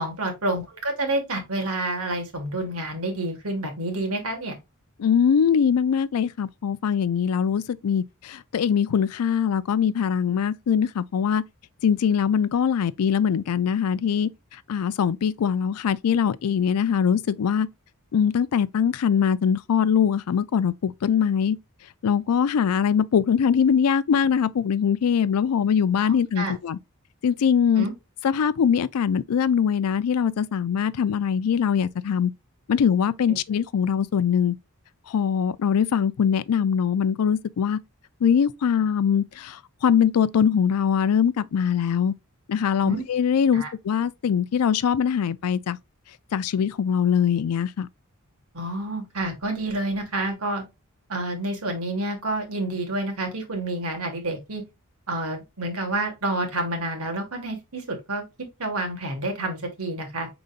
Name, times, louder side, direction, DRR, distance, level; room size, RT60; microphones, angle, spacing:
voice 1, 0.0-4.6 26.0-26.5 27.8-27.9 42.8-43.0 43.5-43.7 48.5-50.6 51.1-54.6 55.1-58.2 58.6-60.3, right 2 dB, 75° right, 1.6 m, -29 dB
voice 2, 5.0-11.4 11.8-14.3 14.7-17.7 18.1-21.6 22.0-26.8 27.2-27.9 28.2-32.3 32.7-34.6 35.1-37.8 38.2-42.1 42.5-45.8 46.3-47.9, left 7 dB, 90° left, 0.4 m, -22 dB
5.3 x 3.9 x 2.4 m
head